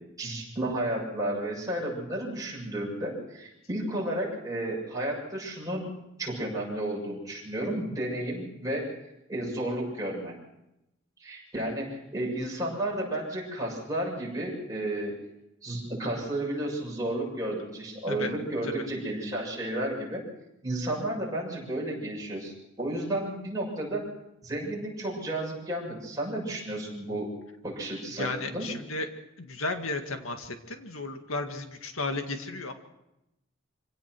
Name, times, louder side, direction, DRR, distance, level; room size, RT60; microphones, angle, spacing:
voice 1, 0.2-8.9 9.3-10.3 11.2-15.1 15.6-20.2 20.6-24.1 24.4-27.3 27.6-28.7, right 1 dB, 15° right, -3 dB, 7.1 m, -32 dB
voice 2, 28.2-29.1 29.4-32.7, left 3 dB, 85° left, 6 dB, 2.0 m, -34 dB
25.5 x 17.0 x 6.2 m, 0.87 s
head